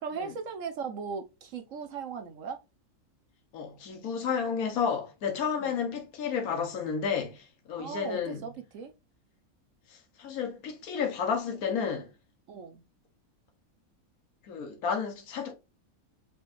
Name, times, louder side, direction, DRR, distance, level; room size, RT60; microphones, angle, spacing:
voice 1, 0.0-2.6 5.6-5.8 7.8-8.9 12.5-12.8, right 6 dB, 65° right, 1.0 m, -38 dB
voice 2, 3.5-8.4 9.9-12.1 14.5-15.5, left 6 dB, 80° left, 1.5 m, -31 dB
6.5 x 3.1 x 2.5 m
omnidirectional pair, 1.5 m